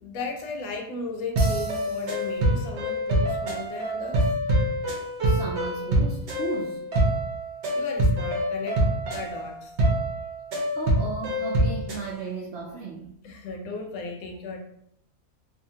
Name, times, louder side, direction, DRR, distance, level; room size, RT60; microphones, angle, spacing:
voice 1, 0.0-4.3 7.7-9.7 13.2-14.6, left 3 dB, 75° left, 1.0 m, -36 dB
sound 1, 1.4-12.1, right 1 dB, 60° right, 0.9 m, -25 dB
voice 2, 5.2-6.8 10.7-13.1, right 4 dB, 75° right, 0.5 m, -35 dB
2.7 x 2.3 x 2.7 m
omnidirectional pair, 1.6 m